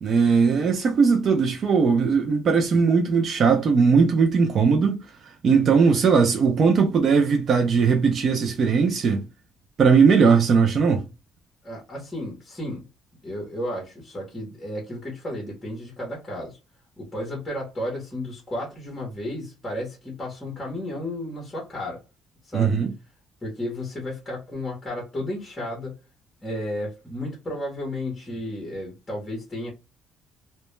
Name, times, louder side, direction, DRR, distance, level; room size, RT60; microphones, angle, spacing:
voice 1, 0.0-9.3 9.8-11.0 22.5-22.9, right 5 dB, 35° right, 0.3 m, -19 dB
voice 2, 11.6-12.8 13.2-16.6 17.0-22.0 22.4-22.8 23.4-26.0 26.4-29.7, left 1 dB, 10° left, 0.8 m, -33 dB
2.2 x 2.0 x 3.0 m
cardioid pair, 170°, 0 cm